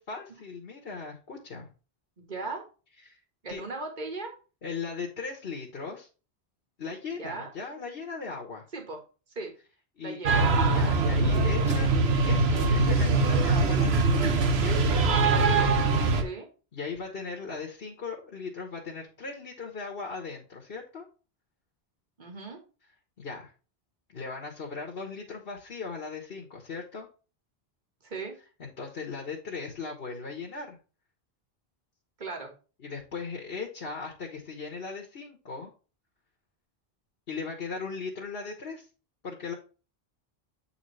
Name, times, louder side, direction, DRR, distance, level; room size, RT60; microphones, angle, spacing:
voice 1, 0.0-1.7 3.0-3.2 3.5-3.6 4.6-6.1 6.8-8.6 10.0-10.2 10.7-11.9 12.2-15.0 16.7-21.1 23.2-23.5 24.1-27.1 28.6-30.8 32.8-35.7 37.3-38.9 39.2-39.5, left 4 dB, 70° left, 1 dB, 1.6 m, -38 dB
voice 2, 2.2-2.6 3.4-4.3 7.2-7.5 8.7-9.0 9.3-9.5 10.0-10.4 16.1-16.5 22.2-22.6 28.0-28.3 32.2-32.5, right 3 dB, 50° right, 3 dB, 1.8 m, -37 dB
sound 1, 10.3-16.2, right 3 dB, 80° right, 1.2 m, -23 dB
8.3 x 4.2 x 3.2 m, 0.34 s
omnidirectional pair, 1.0 m